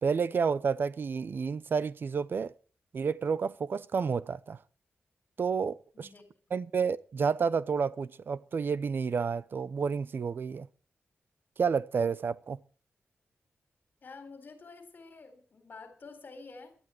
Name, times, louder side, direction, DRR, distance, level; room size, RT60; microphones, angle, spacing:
voice 1, 0.0-2.5 2.9-4.6 5.4-6.1 6.5-10.7 11.6-12.6, right 5 dB, 55° right, 0.7 m, -30 dB
voice 2, 5.9-6.6 14.0-16.8, left 4 dB, 45° left, 4.0 m, -49 dB
18.5 x 12.0 x 4.6 m
wide cardioid pair, 170°, 4 cm